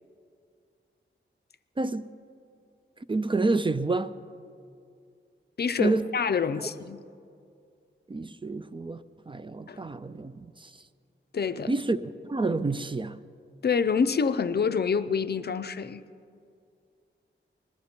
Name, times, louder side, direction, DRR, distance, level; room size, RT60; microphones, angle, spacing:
voice 1, 1.8-2.1 3.1-4.1 5.8-6.0 8.1-10.7 11.7-12.0 12.2-13.2, right 3 dB, 25° right, 0.4 m, -28 dB
voice 2, 5.6-7.0 9.7-9.8 11.3-11.8 13.6-16.0, left 6 dB, 55° left, 0.5 m, -27 dB
21.0 x 13.0 x 4.4 m
wide cardioid pair, 100°, 20 cm